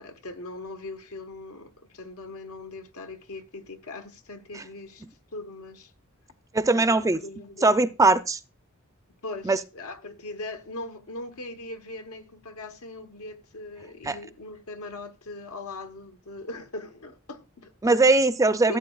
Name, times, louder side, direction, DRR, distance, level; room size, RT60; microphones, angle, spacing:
voice 1, 0.0-5.0 5.3-5.9 6.7-7.7 9.2-17.7 18.7-18.8, left 2 dB, 90° left, 1.2 m, -40 dB
voice 2, 6.5-7.2 7.6-8.4 9.4-9.6 14.0-14.2 17.8-18.8, right 3 dB, 15° right, 0.4 m, -20 dB
15.0 x 8.0 x 2.3 m
head